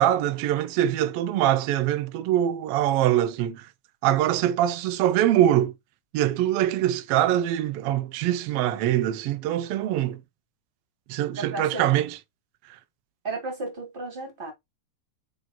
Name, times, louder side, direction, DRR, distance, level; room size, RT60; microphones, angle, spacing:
voice 1, 0.0-3.7 4.0-5.7 6.1-10.2 11.1-12.2, right 12 dB, 80° right, 1.4 m, -23 dB
voice 2, 11.3-11.8 13.2-14.5, right 2 dB, 30° right, 1.1 m, -33 dB
7.6 x 2.6 x 2.2 m
omnidirectional pair, 3.3 m